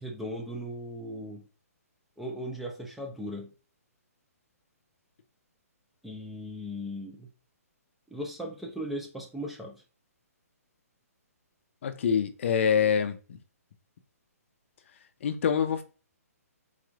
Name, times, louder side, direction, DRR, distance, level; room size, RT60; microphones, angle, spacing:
voice 1, 0.0-1.4 2.2-3.5 6.0-7.3 8.1-9.8, equal, ahead, 0.6 m, -37 dB
voice 2, 11.8-13.4 15.2-15.8, left 7 dB, 50° left, 0.5 m, -25 dB
3.9 x 3.0 x 2.4 m
hypercardioid pair, 150°, 9 cm